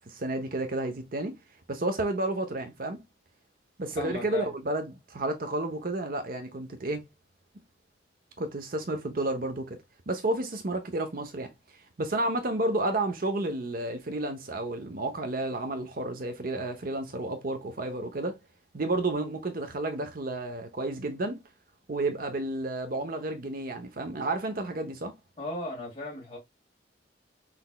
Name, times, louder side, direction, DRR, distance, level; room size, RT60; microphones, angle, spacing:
voice 1, 0.1-1.3 1.7-3.0 3.8-7.0 8.4-9.8 10.1-11.5 12.0-18.4 18.7-21.4 21.9-25.1, right 2 dB, 50° right, 0.8 m, -31 dB
voice 2, 4.0-4.5 25.4-26.4, left 1 dB, 30° left, 2.2 m, -36 dB
5.9 x 3.4 x 2.2 m
head